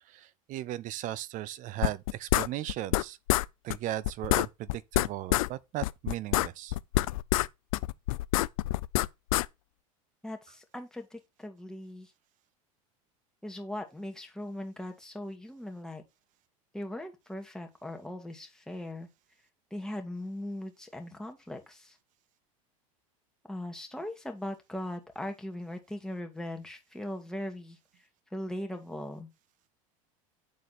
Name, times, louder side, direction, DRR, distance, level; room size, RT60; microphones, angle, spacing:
voice 1, 0.1-3.2 3.6-6.7, right 13 dB, 45° right, 0.6 m, -37 dB
sound 1, 1.8-3.0 3.3-3.5 3.7-3.8 4.0-5.5 5.8-7.5 7.7-9.5, left 18 dB, 75° left, 0.4 m, -26 dB
voice 2, 10.2-12.1 13.4-16.0 16.7-19.1 19.7-21.9 23.5-27.8 28.3-29.3, left 1 dB, 5° left, 1.9 m, -39 dB
8.3 x 4.2 x 4.2 m
hypercardioid pair, 95°, 18 cm